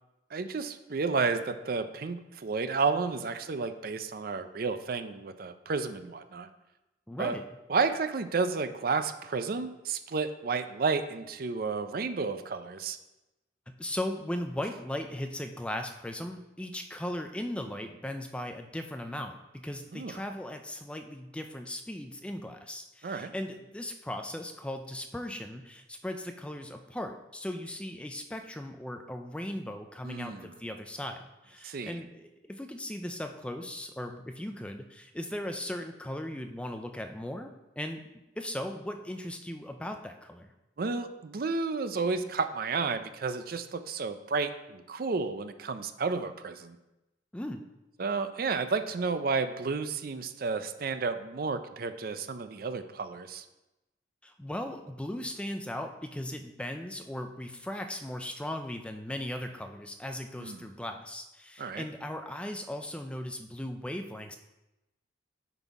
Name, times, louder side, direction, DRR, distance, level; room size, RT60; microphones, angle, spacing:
voice 1, 0.3-6.5 7.2-7.4 7.7-13.0 19.9-20.2 23.0-23.3 30.0-30.5 31.6-32.0 40.8-46.8 48.0-53.4 60.4-60.7 61.6-61.9, right 4 dB, 55° right, 10 dB, 0.5 m, -31 dB
voice 2, 7.1-7.5 13.7-38.0 38.4-40.5 47.3-47.6 54.2-64.4, left 1 dB, 5° left, 5 dB, 0.4 m, -38 dB
8.9 x 4.1 x 4.7 m, 0.98 s
head